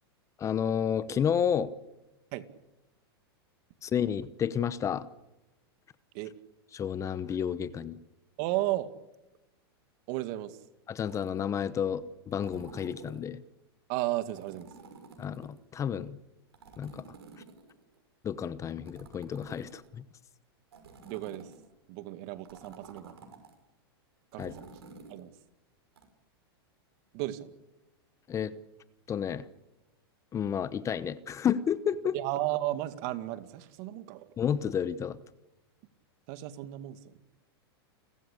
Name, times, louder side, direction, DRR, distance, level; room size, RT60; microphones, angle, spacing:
voice 1, 0.4-1.7 3.8-5.1 6.7-8.0 10.9-13.4 15.2-16.2 16.8-17.0 18.2-20.0 24.4-24.5 28.3-28.5 29.1-29.5 30.3-32.2 34.4-35.2, left 8 dB, 25° left, 16 dB, 1.0 m, -31 dB
voice 2, 8.4-8.9 10.1-10.6 13.9-14.7 21.0-21.5 21.9-23.1 24.3-24.7 25.1-25.3 27.1-27.5 32.1-34.3 36.3-37.2, right 16 dB, 50° right, 11 dB, 2.1 m, -34 dB
sound 1, 11.1-11.5 12.3-13.3 14.2-15.6 16.5-18.0 18.7-20.0 20.7-21.7 22.4-23.5 24.3-25.2 26.0-26.1, right 4 dB, 85° right, 6.1 m, -51 dB
29.5 x 15.0 x 8.5 m, 1.0 s
hypercardioid pair, 125°, 13 cm